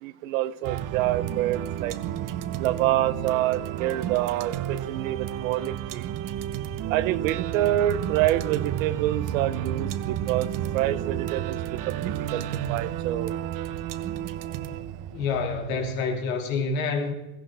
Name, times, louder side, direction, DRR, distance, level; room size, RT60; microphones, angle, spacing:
voice 1, 0.0-2.0 2.6-6.1 6.9-13.3, right 13 dB, 90° right, 14 dB, 0.8 m, -27 dB
sound 1, 0.6-15.9, right 11 dB, 55° right, 0.9 m, -31 dB
voice 2, 15.1-17.1, left 4 dB, 90° left, 3 dB, 2.3 m, -27 dB
17.0 x 15.0 x 3.4 m, 1.0 s
supercardioid pair, 95°, 39 cm